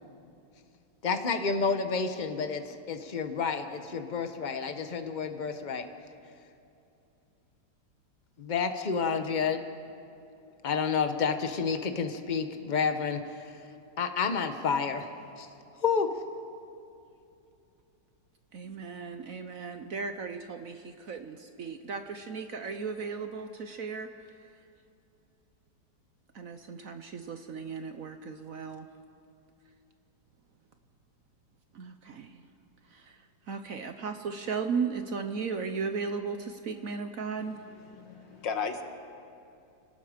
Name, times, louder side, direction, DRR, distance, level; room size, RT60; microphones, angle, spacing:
voice 1, 1.0-2.6 2.9-5.8 8.4-9.6 10.6-13.2 14.0-15.1 15.8-16.1, left 5 dB, 35° left, 8 dB, 0.9 m, -29 dB
voice 2, 18.5-24.1 26.3-28.9 31.7-32.4 32.9-33.2 33.5-37.6, right 5 dB, 55° right, 7 dB, 1.0 m, -36 dB
voice 3, 37.5-38.8, left 5 dB, 75° left, 6 dB, 2.0 m, -36 dB
28.0 x 18.5 x 5.1 m, 2.7 s
omnidirectional pair, 2.0 m